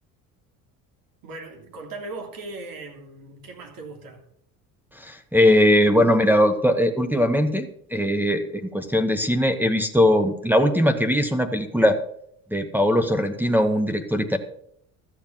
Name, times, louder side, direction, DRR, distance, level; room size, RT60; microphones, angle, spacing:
voice 1, 1.2-4.2, right 2 dB, 55° right, 3.0 m, -38 dB
voice 2, 5.0-12.0 12.5-14.4, left 1 dB, 5° right, 1.3 m, -20 dB
13.5 x 7.0 x 5.9 m
hypercardioid pair, 70°, 40 cm